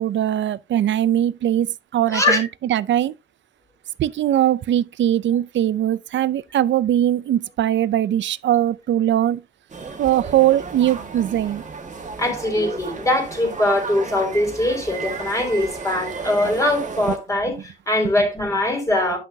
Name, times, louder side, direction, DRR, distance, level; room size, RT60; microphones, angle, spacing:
voice 1, 0.0-3.2 4.0-9.4 10.0-11.6, right 11 dB, 90° right, 0.5 m, -20 dB
voice 2, 2.1-2.5 12.2-19.2, left 1 dB, 15° left, 3.7 m, -22 dB
sound 1, 9.7-17.2, right 4 dB, 40° right, 1.7 m, -33 dB
10.5 x 6.0 x 2.7 m
wide cardioid pair, 140°, 19 cm